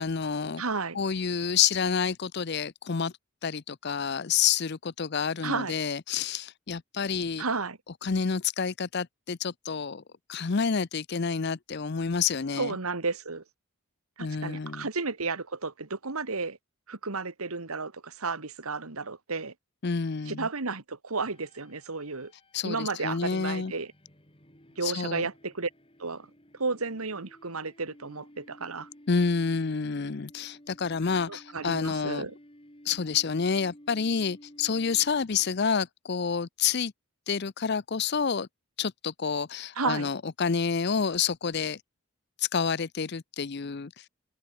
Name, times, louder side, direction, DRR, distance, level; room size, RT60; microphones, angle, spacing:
voice 1, 0.0-0.6 0.9-3.1 3.4-7.4 8.0-10.0 10.3-12.8 14.2-14.9 19.8-20.5 22.5-23.7 24.8-25.3 29.1-32.3 32.9-36.9 37.3-38.5 38.8-41.8 42.4-44.1, left 6 dB, 50° left, 0.6 m, -29 dB
voice 2, 0.6-1.0 5.4-5.7 7.4-7.8 12.6-13.4 14.2-16.6 16.9-19.5 20.3-22.3 22.6-23.9 24.8-25.7 26.0-26.3 26.6-28.9 31.3-32.3 39.8-40.1, right 4 dB, 85° right, 1.9 m, -32 dB
sound 1, 21.3-35.7, equal, 25° left, 7.7 m, -55 dB
open air
head